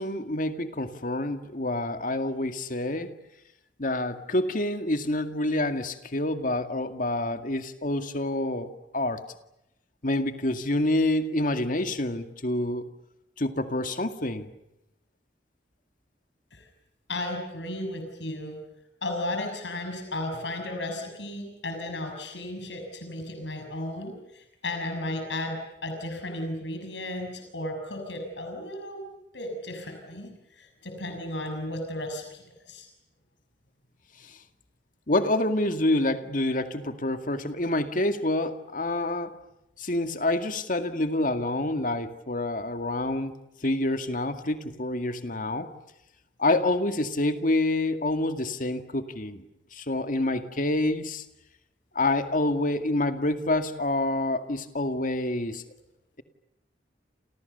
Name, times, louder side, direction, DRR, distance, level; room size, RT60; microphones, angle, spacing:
voice 1, 0.0-3.1 3.8-9.2 10.0-12.9 13.4-14.5 34.2-34.4 35.1-39.3 39.8-43.3 43.6-45.7 46.4-49.4 49.7-51.2 51.9-55.6, left 1 dB, 50° left, 8 dB, 2.1 m, -27 dB
voice 2, 17.1-18.6 19.0-29.0 29.3-32.9, left 1 dB, 85° left, 4 dB, 6.6 m, -34 dB
30.0 x 28.5 x 6.9 m, 0.85 s
head